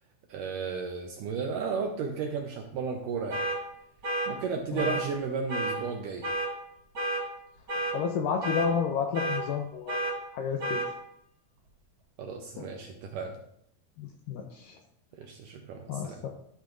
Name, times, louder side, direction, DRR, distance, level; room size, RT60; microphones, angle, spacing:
voice 1, 0.3-3.4 4.3-6.3 12.2-13.4 15.2-16.2, right 5 dB, 75° right, 3 dB, 2.0 m, -34 dB
sound 1, 3.3-3.6 4.0-4.3 4.8-5.0 5.5-5.8 6.2-6.5 7.0-7.2 7.7-8.0 8.4-8.7 9.1-9.4 9.9-10.1 10.6-10.9, right 1 dB, 30° right, 3.6 m, -30 dB
voice 2, 7.9-10.0 10.3-10.8 12.6-12.7 14.0-14.8 15.9-16.3, left 7 dB, 80° left, 3 dB, 2.0 m, -31 dB
13.5 x 8.5 x 2.6 m, 0.73 s
omnidirectional pair, 4.6 m